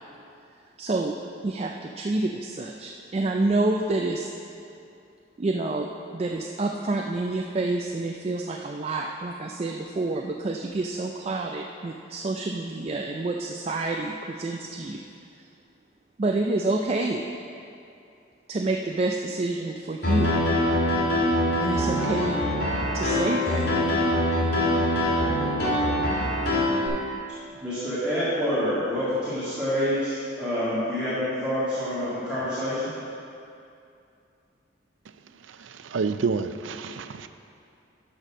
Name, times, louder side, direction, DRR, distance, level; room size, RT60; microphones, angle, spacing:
voice 1, 0.8-1.1 1.4-4.3 5.4-15.0 16.2-17.2 18.5-20.3 21.6-22.4 22.9-23.7, right 2 dB, 35° right, 1 dB, 0.4 m, -28 dB
Piano, 20.0-26.9, left 1 dB, 50° left, 2.1 m, -24 dB
voice 2, 27.6-32.9, equal, 5° right, -13 dB, 1.9 m, -27 dB
voice 3, 35.9-37.3, right 5 dB, 90° right, 10 dB, 0.5 m, -28 dB
12.0 x 4.3 x 6.1 m, 2.5 s
head